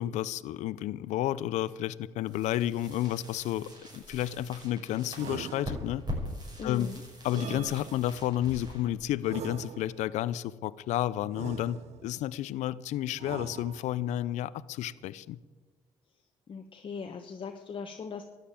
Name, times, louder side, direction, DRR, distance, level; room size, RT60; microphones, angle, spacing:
voice 1, 0.0-6.0 6.6-6.9 7.2-15.4, left 13 dB, 75° left, 18 dB, 0.5 m, -31 dB
sound 1, 2.2-10.0, left 1 dB, 35° right, 6.2 m, -43 dB
sound 2, 5.1-6.2 7.3-8.3 9.2-10.2 11.3-12.2 13.2-14.1, right 9 dB, 65° right, 0.8 m, -43 dB
voice 2, 6.6-7.0 16.5-18.2, left 5 dB, 45° left, 5 dB, 1.1 m, -39 dB
13.0 x 9.6 x 8.8 m, 1.3 s
supercardioid pair, 70°, 12 cm